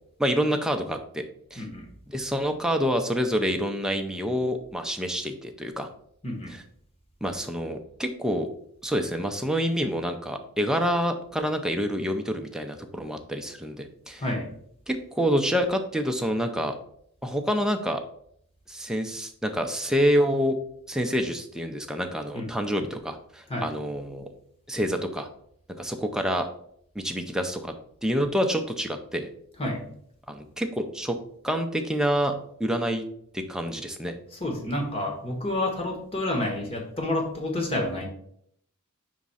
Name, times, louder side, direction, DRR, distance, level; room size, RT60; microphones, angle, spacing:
voice 1, 0.2-1.2 1.5-1.6 2.1-5.9 6.5-6.6 7.2-8.5 8.8-14.2 14.9-16.8 17.2-18.0 18.7-20.6 20.9-24.3 24.7-25.3 25.8-26.5 26.9-27.7 28.0-29.3 30.3-31.2 31.4-32.3 32.6-33.0 33.3-34.2, equal, 5° right, 4 dB, 0.5 m, -27 dB
voice 2, 6.2-6.5 14.2-14.5 22.3-22.5 23.5-23.7 29.6-29.8 34.4-38.1, left 1 dB, 25° left, 1 dB, 1.3 m, -29 dB
5.1 x 3.6 x 5.5 m, 0.69 s
head